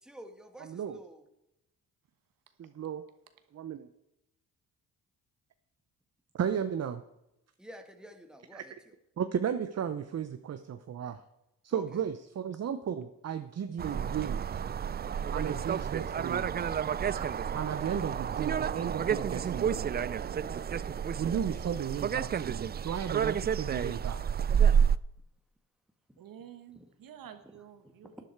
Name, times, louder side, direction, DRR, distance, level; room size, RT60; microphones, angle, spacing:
voice 1, 0.0-1.2 7.6-9.0 11.7-12.0 26.1-26.2 26.8-26.9 27.8-28.0, equal, ahead, 5 dB, 1.7 m, -50 dB
voice 2, 0.6-1.0 2.6-3.0 3.5-3.9 6.3-7.0 8.5-8.6 9.2-11.2 11.6-14.6 15.3-16.5 17.5-19.9 21.2-24.2, right 8 dB, 45° right, 10 dB, 0.8 m, -34 dB
sound 1, 13.8-25.0, right 8 dB, 30° right, 0.4 m, -30 dB
voice 3, 16.4-16.8 17.0-17.6 26.2-28.2, right 9 dB, 70° right, 8 dB, 1.4 m, -51 dB
11.5 x 10.5 x 4.7 m, 0.85 s
cardioid pair, 70°, 35 cm